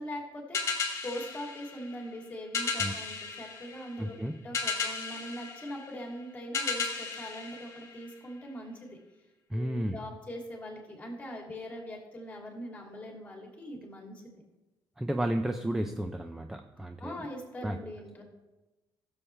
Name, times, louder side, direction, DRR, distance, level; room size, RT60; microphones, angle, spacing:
voice 1, 0.0-4.2 4.4-9.0 9.5-14.3 17.0-18.2, equal, 15° left, 0 dB, 2.7 m, -41 dB
sound 1, 0.5-8.4, left 4 dB, 35° left, 1.9 m, -35 dB
voice 2, 4.0-4.3 9.5-10.0 15.0-17.2 17.6-17.8, right 1 dB, 5° right, 6 dB, 0.5 m, -32 dB
15.5 x 7.2 x 3.3 m, 1.1 s
cardioid pair, 135°, 8 cm